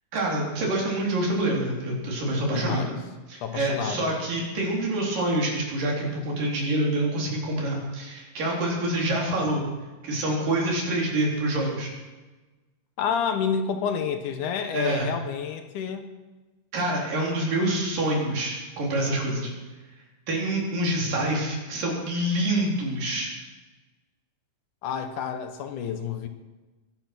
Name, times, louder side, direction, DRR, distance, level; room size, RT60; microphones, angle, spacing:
voice 1, 0.1-3.0 3.3-9.6 10.0-11.9 14.7-15.1 16.7-19.5 20.3-23.3, right 1 dB, 75° right, -2 dB, 5.4 m, -26 dB
voice 2, 2.5-2.9 3.4-4.1 13.0-16.1 24.8-26.3, left 7 dB, 70° left, 8 dB, 2.5 m, -29 dB
22.5 x 10.5 x 6.1 m, 1.2 s
omnidirectional pair, 3.9 m